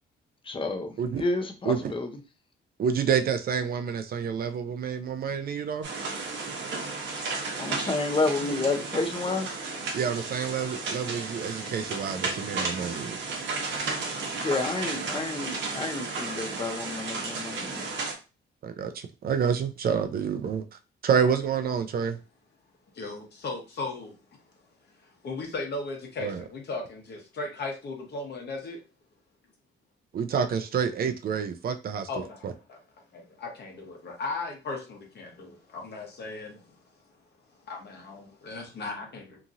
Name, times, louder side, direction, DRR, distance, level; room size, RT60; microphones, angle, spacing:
voice 1, 0.4-2.1 7.6-9.5 14.4-17.9, left 3 dB, 25° left, 5 dB, 0.6 m, -30 dB
voice 2, 2.8-5.9 9.9-13.2 18.6-22.2 26.2-26.4 30.1-32.0 32.4-32.5, right 7 dB, 50° right, 8 dB, 0.4 m, -28 dB
sound 1, 5.8-18.1, right 3 dB, 65° right, 0.9 m, -33 dB
voice 3, 22.9-24.1 25.0-28.8 32.1-32.4 32.7-32.8 33.4-36.7 37.6-39.4, left 3 dB, 55° left, 2 dB, 1.1 m, -36 dB
2.9 x 2.6 x 2.5 m, 0.30 s
cardioid pair, 90°, 20 cm